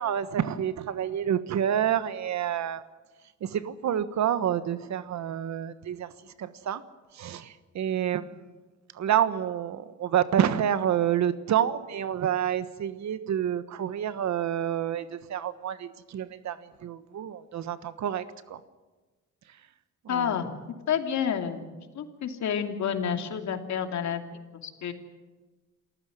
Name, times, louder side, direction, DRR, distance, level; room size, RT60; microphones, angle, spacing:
voice 1, 0.0-2.8 3.4-6.1 6.4-6.8 7.1-8.4 8.9-18.6 20.0-20.4, right 10 dB, 65° right, 13 dB, 1.4 m, -28 dB
voice 2, 20.1-20.5 20.9-21.7 21.9-24.2 24.6-24.9, left 8 dB, 65° left, 5 dB, 2.8 m, -29 dB
28.0 x 15.0 x 9.3 m, 1.3 s
cardioid pair, 90°, 30 cm